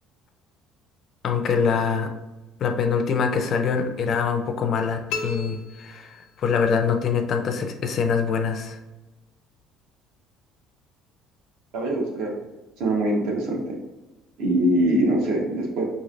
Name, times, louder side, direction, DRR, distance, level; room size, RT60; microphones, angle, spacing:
voice 1, 1.2-2.1 2.6-8.8, left 6 dB, 35° left, 5 dB, 0.4 m, -24 dB
sound 1, 5.1-6.7, left 5 dB, 85° left, 0.6 m, -34 dB
voice 2, 11.7-12.4 12.8-13.6 14.4-15.8, right 1 dB, 75° right, 0 dB, 1.0 m, -23 dB
5.4 x 3.1 x 2.5 m, 1.1 s
cardioid pair, 170°, 0 cm